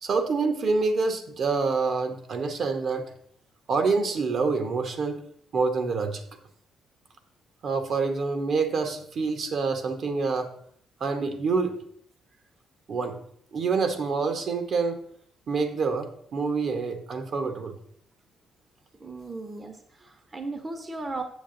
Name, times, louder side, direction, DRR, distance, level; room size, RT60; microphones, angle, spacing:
voice 1, 0.0-3.1 3.7-5.2 5.5-6.2 7.6-10.5 11.0-11.8 12.9-13.2 13.5-15.0 15.5-17.8, right 4 dB, 60° right, 7 dB, 1.1 m, -26 dB
voice 2, 19.0-21.2, right 3 dB, 30° right, 7 dB, 0.9 m, -36 dB
7.3 x 6.7 x 3.8 m, 0.65 s
cardioid pair, 90°, 0 cm